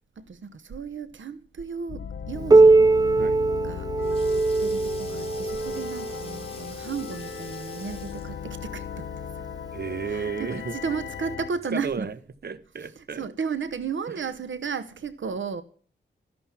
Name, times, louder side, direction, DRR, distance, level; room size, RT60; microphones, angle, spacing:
voice 1, 0.2-2.9 3.6-3.9 4.6-9.5 10.1-12.1 12.9-15.6, right 5 dB, 70° right, 1.0 m, -34 dB
sound 1, 1.9-11.5, left 8 dB, 85° left, 1.2 m, -37 dB
Piano, 2.5-7.8 8.7-8.8 9.3-9.4 10.2-10.3 11.3-11.4, right 3 dB, 20° right, 0.6 m, -21 dB
Sink (filling or washing), 3.8-8.5, left 3 dB, 30° left, 3.8 m, -47 dB
voice 2, 9.7-10.7 11.7-12.1 12.4-13.3 14.1-14.3, right 6 dB, 55° right, 1.1 m, -33 dB
13.5 x 11.5 x 6.0 m
wide cardioid pair, 85°, 20 cm